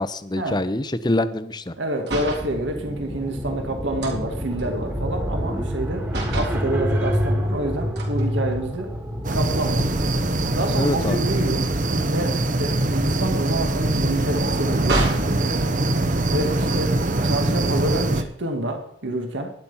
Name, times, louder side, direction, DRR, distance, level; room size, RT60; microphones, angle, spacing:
voice 1, 0.0-1.7 10.7-11.2, left 1 dB, 20° left, 13 dB, 0.7 m, -25 dB
voice 2, 1.8-6.1 6.3-8.9 9.3-9.9 10.5-11.7 12.1-15.4 16.3-19.5, right 1 dB, 80° right, 4 dB, 2.0 m, -28 dB
sound 1, 2.0-2.5 4.0-5.8 6.1-6.6 8.0-9.0 9.5-9.7 10.0-15.4 16.4-17.1, right 2 dB, 60° right, 3.6 m, -32 dB
sound 2, 2.2-11.0, equal, 15° right, 1.6 m, -28 dB
sound 3, 9.2-18.2, right 2 dB, 40° right, 0.9 m, -23 dB
11.5 x 10.5 x 5.6 m, 0.70 s
head